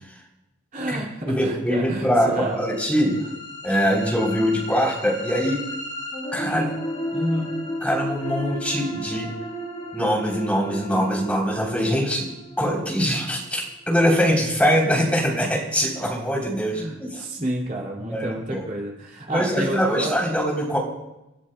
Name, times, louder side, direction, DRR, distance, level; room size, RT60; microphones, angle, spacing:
voice 1, 0.7-2.6 16.7-20.1, right 1 dB, 40° right, -2 dB, 2.5 m, -30 dB
voice 2, 1.3-3.2 3.6-5.6 6.3-6.7 7.1-7.5 7.8-9.3 9.9-12.3 12.6-17.2 18.0-18.7 19.3-20.8, equal, 5° left, -3 dB, 3.6 m, -23 dB
sound 1, 2.3-14.3, equal, 35° left, 4.2 m, -34 dB
29.0 x 13.5 x 2.3 m, 0.93 s
head